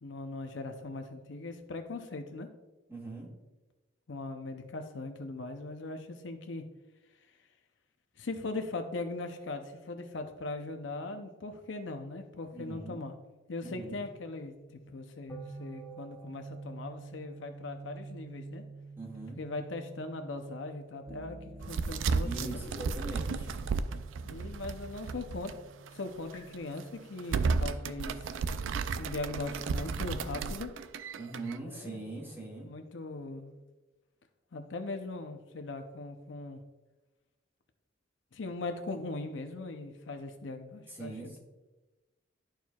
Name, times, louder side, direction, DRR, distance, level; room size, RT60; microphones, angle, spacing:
voice 1, 0.0-2.5 4.1-6.6 8.2-13.1 13.5-18.6 19.4-22.6 24.2-25.6 25.9-28.4 29.0-30.7 31.6-32.1 32.6-33.6 34.5-36.6 38.3-41.1, left 2 dB, 70° left, 6 dB, 0.6 m, -40 dB
voice 2, 2.9-3.3 12.5-13.0 13.6-14.0 19.0-19.4 22.2-23.7 31.2-32.7 40.9-41.4, right 2 dB, 10° right, -4 dB, 2.0 m, -41 dB
sound 1, 13.7-28.8, right 3 dB, 15° left, 1.4 m, -49 dB
sound 2, 21.6-25.5 25.9-26.0 26.5-26.8 27.2-31.6, right 4 dB, 80° right, 0.4 m, -33 dB
12.0 x 4.5 x 2.3 m, 1.1 s
head